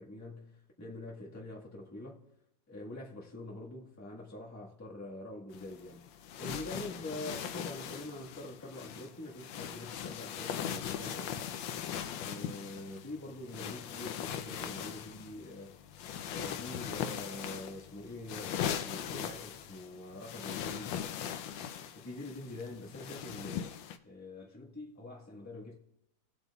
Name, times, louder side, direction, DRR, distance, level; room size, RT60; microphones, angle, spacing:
voice 1, 0.0-2.2 2.7-11.3 12.2-15.8 16.3-21.0 21.9-23.7 24.0-25.8, left 1 dB, 10° left, 1.4 m, -45 dB
sound 1, 5.5-24.0, left 9 dB, 85° left, 1.4 m, -40 dB
17.5 x 8.0 x 2.4 m
omnidirectional pair, 2.0 m